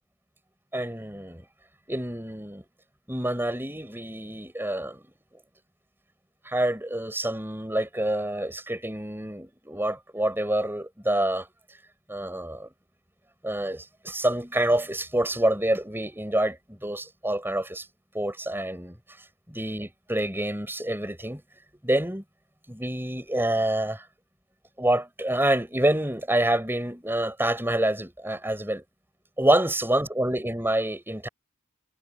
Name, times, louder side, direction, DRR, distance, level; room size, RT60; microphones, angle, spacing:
voice 1, 0.7-1.4 1.9-2.6 3.1-5.0 6.4-11.5 12.1-12.7 13.4-17.9 18.1-19.0 19.5-21.4 21.8-22.2 22.7-24.0 24.8-28.8 29.4-31.3, right 1 dB, 10° right, 6.4 m, -27 dB
head